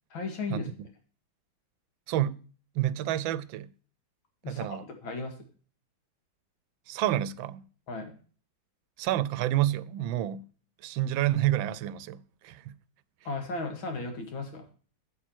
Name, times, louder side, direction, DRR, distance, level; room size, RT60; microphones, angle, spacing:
voice 1, 0.1-0.7 4.4-5.3 7.9-8.1 13.2-14.7, left 3 dB, 80° left, 2.7 m, -35 dB
voice 2, 2.1-2.4 2.7-3.7 4.5-4.8 6.9-7.6 9.0-10.4 10.8-12.8, right 13 dB, 80° right, 1.3 m, -29 dB
8.3 x 7.9 x 4.4 m
omnidirectional pair, 2.1 m